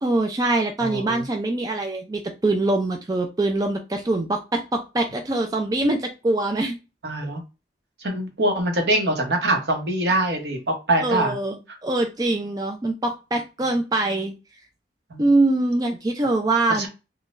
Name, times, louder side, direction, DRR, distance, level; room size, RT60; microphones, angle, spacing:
voice 1, 0.0-6.7 11.0-14.3 15.2-16.9, right 2 dB, 20° right, 3 dB, 0.3 m, -23 dB
voice 2, 0.8-1.2 7.0-7.4 8.0-11.3 15.1-15.2 16.7-16.9, right 1 dB, 70° right, 2 dB, 1.0 m, -23 dB
3.7 x 2.2 x 2.4 m, 0.29 s
head